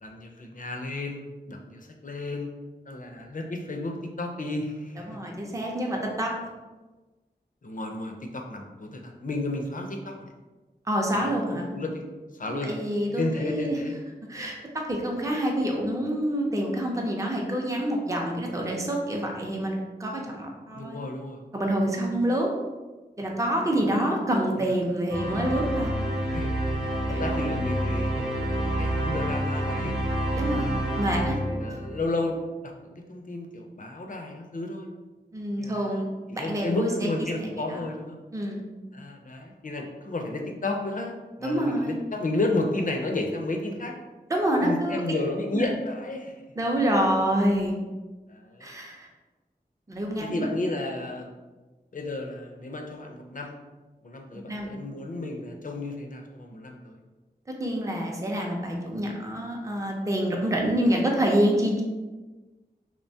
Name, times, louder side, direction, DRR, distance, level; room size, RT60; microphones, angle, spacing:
voice 1, 0.0-1.2 1.5-2.5 2.9-5.2 7.6-10.3 11.1-12.0 12.3-12.8 13.1-14.0 20.7-21.4 24.6-24.7 26.3-26.6 27.1-30.0 30.5-30.8 31.0-32.4 32.6-34.9 35.6-36.0 36.3-38.2 38.9-43.9 44.6-46.4 48.3-48.7 50.2-51.3 51.9-53.5 54.0-57.0, left 2 dB, 50° left, 2 dB, 0.4 m, -32 dB
voice 2, 5.0-6.3 10.9-11.7 12.5-13.8 14.3-21.0 21.5-22.5 23.2-25.9 27.1-27.4 30.4-30.7 31.0-31.4 35.3-36.1 36.4-37.1 37.7-37.8 38.3-38.6 41.4-42.0 44.3-45.2 45.5-45.7 46.6-47.8 48.6-49.1 49.9-50.5 54.5-54.7 57.6-61.8, right 1 dB, 20° right, -1 dB, 0.5 m, -27 dB
sound 1, 25.1-32.1, right 1 dB, 85° right, 0.6 m, -28 dB
2.8 x 2.2 x 2.6 m, 1.2 s
wide cardioid pair, 40°, 17 cm